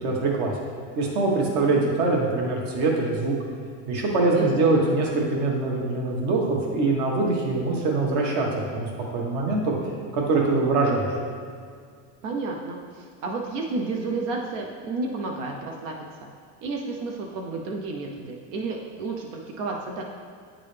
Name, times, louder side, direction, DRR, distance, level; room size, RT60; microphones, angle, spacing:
voice 1, 0.0-0.5 0.9-3.3 3.9-8.5 8.7-9.7 10.1-11.2, right 3 dB, 65° right, -1 dB, 1.4 m, -23 dB
voice 2, 4.3-5.0 12.2-16.0 16.6-20.0, right 3 dB, 85° right, 0 dB, 0.8 m, -31 dB
8.8 x 3.8 x 3.3 m, 2.1 s
cardioid pair, 150°, 37 cm